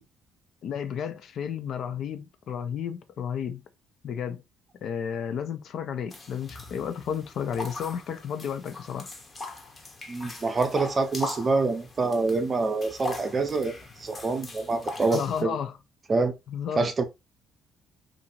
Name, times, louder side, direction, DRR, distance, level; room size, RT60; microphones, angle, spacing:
voice 1, 0.6-3.6 4.0-4.4 4.8-9.1 15.1-15.8 16.5-16.8, left 8 dB, 60° left, 0.4 m, -32 dB
sound 1, 6.1-15.4, left 2 dB, 25° left, 0.7 m, -40 dB
voice 2, 10.1-13.7 14.0-15.6 16.1-16.3 16.8-17.0, right 3 dB, 30° right, 0.6 m, -26 dB
2.8 x 2.5 x 2.8 m
cardioid pair, 130°, 0 cm